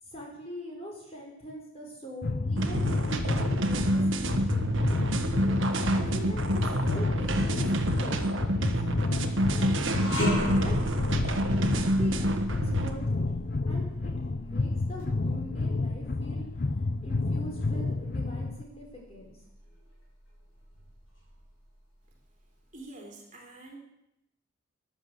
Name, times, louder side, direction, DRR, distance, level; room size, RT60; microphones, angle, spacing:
voice 1, 0.0-5.0 5.9-9.8 10.6-10.8 11.7-13.3 13.7-16.5 17.0-19.4, equal, 30° left, -1 dB, 4.6 m, -43 dB
sound 1, 2.2-18.6, left 3 dB, 45° left, 0.6 m, -30 dB
sound 2, 2.6-12.9, right 1 dB, 60° right, 1.4 m, -28 dB
sound 3, 9.9-19.1 19.5-19.7 20.6-21.5, equal, 65° left, 7.2 m, -37 dB
voice 2, 22.7-23.8, right 2 dB, 35° right, 0 dB, 3.3 m, -46 dB
14.0 x 10.5 x 7.8 m, 0.87 s
head